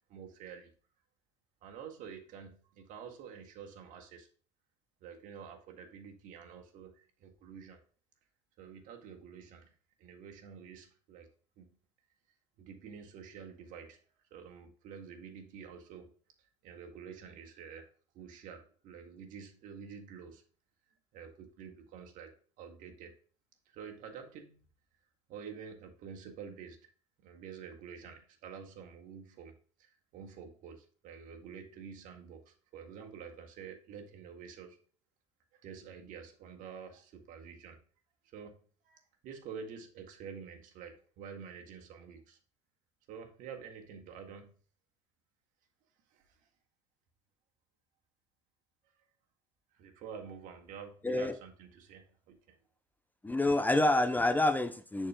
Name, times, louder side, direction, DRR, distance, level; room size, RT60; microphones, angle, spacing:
voice 1, 0.1-0.7 1.6-4.3 5.0-7.8 8.6-9.7 10.0-11.3 11.6-11.7 12.6-14.0 14.3-16.1 16.4-20.4 21.1-23.1 23.6-24.6 25.3-26.8 27.2-34.8 35.5-37.8 38.2-42.4 43.1-44.5 46.1-46.4 49.7-52.6, right 6 dB, 60° right, 4 dB, 1.7 m, -48 dB
voice 2, 51.0-51.4 53.2-55.1, left 2 dB, 10° left, 10 dB, 0.6 m, -27 dB
11.0 x 4.5 x 2.2 m, 0.41 s
hypercardioid pair, 75°, 16 cm